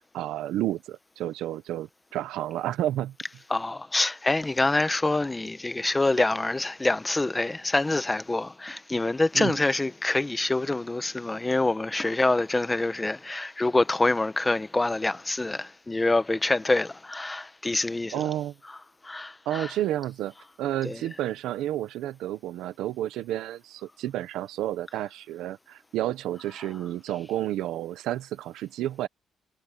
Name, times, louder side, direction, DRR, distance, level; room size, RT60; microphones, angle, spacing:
voice 1, 0.1-3.1 9.3-9.6 18.1-18.5 19.4-29.1, right 13 dB, 90° right, 1.2 m, -31 dB
voice 2, 3.5-18.3 18.7-18.8 19.0-19.7 20.8-21.0, left 2 dB, 15° left, 1.2 m, -26 dB
cardioid pair, 90°, 0 cm